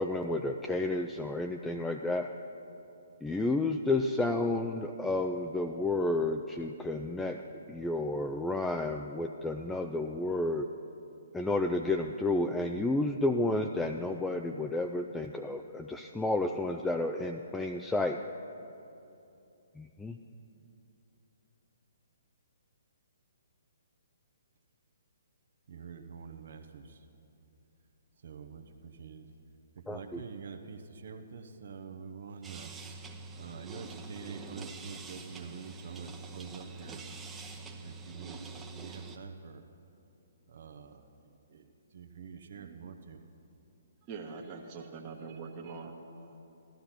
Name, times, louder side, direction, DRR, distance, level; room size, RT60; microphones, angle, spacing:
voice 1, 0.0-2.3 3.2-7.4 7.7-10.6 11.3-18.2 19.8-20.1 29.9-30.2, left 2 dB, 5° left, 3 dB, 0.5 m, -31 dB
voice 2, 25.7-27.0 28.2-29.3 29.8-32.7 33.4-37.0 37.8-39.6 40.5-41.0 41.5-41.6 41.9-43.2, right 6 dB, 60° right, 6 dB, 1.0 m, -46 dB
sound 1, 32.4-39.2, right 3 dB, 10° right, 0.9 m, -45 dB
voice 3, 42.5-43.1 44.1-46.4, right 4 dB, 30° right, -1 dB, 1.3 m, -44 dB
15.5 x 12.5 x 5.8 m, 2.8 s
figure-of-eight pair, 130°, 0 cm